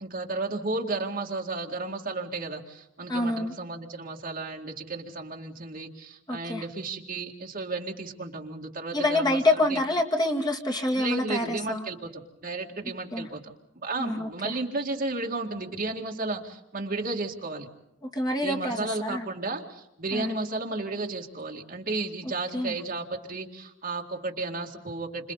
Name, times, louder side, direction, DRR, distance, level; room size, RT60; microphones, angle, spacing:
voice 1, 0.0-9.8 10.9-17.7 18.4-25.3, right 3 dB, 50° right, 1 dB, 2.2 m, -33 dB
voice 2, 3.1-3.5 6.3-6.6 8.9-11.8 13.1-13.3 14.0-14.5 18.0-19.3 20.1-20.4 22.5-22.7, left 1 dB, 20° left, 0 dB, 2.4 m, -27 dB
30.0 x 26.5 x 4.1 m, 0.82 s
head